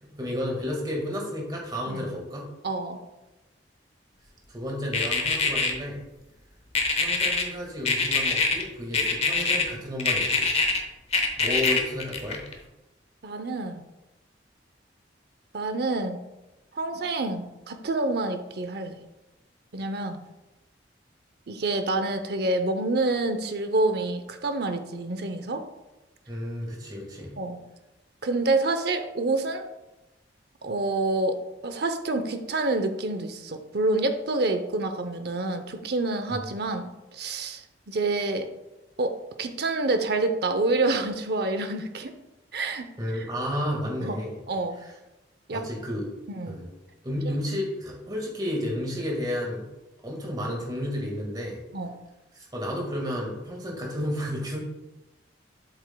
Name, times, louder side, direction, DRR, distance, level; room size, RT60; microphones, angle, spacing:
voice 1, 0.0-2.5 4.5-6.0 7.0-10.5 11.4-12.4 26.3-27.4 43.0-44.4 45.5-46.1 46.5-46.6 47.0-49.7 50.0-51.6 52.4-54.6, equal, 25° right, -1 dB, 1.8 m, -32 dB
voice 2, 2.6-3.0 13.2-13.8 15.5-16.2 16.7-19.0 19.7-20.2 21.5-25.6 27.4-27.6 28.2-29.6 30.6-38.5 39.0-42.1 42.5-42.9 43.1-43.3 44.0-44.2 44.5-44.8 45.5-45.6 46.3-46.6 47.3-47.4 51.7-52.0, right 2 dB, 60° right, 7 dB, 0.7 m, -28 dB
sound 1, 4.9-5.7 6.8-7.4 7.9-8.6 8.9-9.6 10.0-10.8 11.1-12.5, left 4 dB, 35° left, 0.9 m, -23 dB
7.9 x 7.6 x 2.3 m, 1.0 s
head